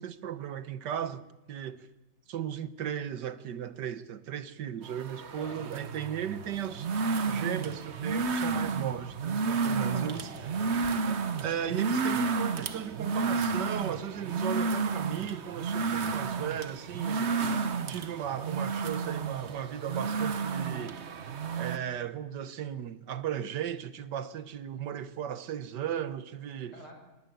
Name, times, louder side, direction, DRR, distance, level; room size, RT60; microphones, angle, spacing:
voice 1, 0.0-1.9 2.3-6.9 7.3-10.6 11.0-17.3 17.9-21.0 21.6-26.8, right 9 dB, 75° right, 1.6 m, -36 dB
sound 1, 4.8-21.8, right 4 dB, 45° right, 1.1 m, -31 dB
voice 2, 9.7-11.0 17.3-17.7 26.7-26.9, left 1 dB, 70° left, 6.6 m, -46 dB
19.0 x 18.5 x 9.3 m
omnidirectional pair, 1.9 m